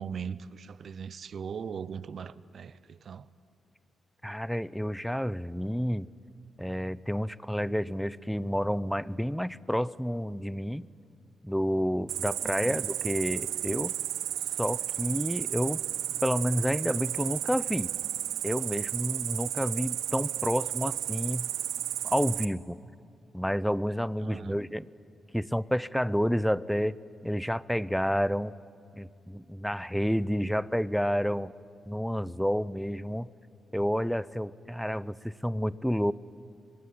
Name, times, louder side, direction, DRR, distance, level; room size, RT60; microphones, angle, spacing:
voice 1, 0.0-3.3 12.4-12.8 24.2-24.6, right 7 dB, 60° right, 0.7 m, -39 dB
voice 2, 4.2-6.1 6.6-10.9 11.4-13.9 14.6-15.8 16.2-17.9 18.4-21.5 22.0-22.8 23.3-24.9 25.3-26.9 27.2-28.5 29.0-31.5 31.9-33.3 33.7-36.1, equal, ahead, 0.7 m, -29 dB
Cricket, 12.1-22.5, right 12 dB, 90° right, 0.9 m, -33 dB
24.5 x 21.0 x 9.7 m
cardioid pair, 65°, 0 cm